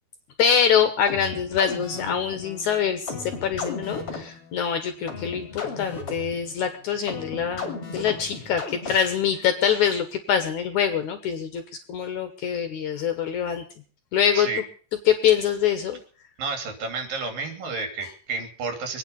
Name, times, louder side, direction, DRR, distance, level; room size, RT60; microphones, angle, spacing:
voice 1, 0.4-11.6 11.9-13.6 14.1-14.5 15.1-16.0, left 8 dB, 65° left, 8 dB, 2.4 m, -24 dB
sound 1, 1.1-9.3, left 4 dB, 40° left, 3.6 m, -36 dB
voice 2, 16.4-19.0, right 4 dB, 80° right, 5 dB, 4.7 m, -31 dB
25.0 x 9.4 x 5.4 m, 0.42 s
omnidirectional pair, 4.0 m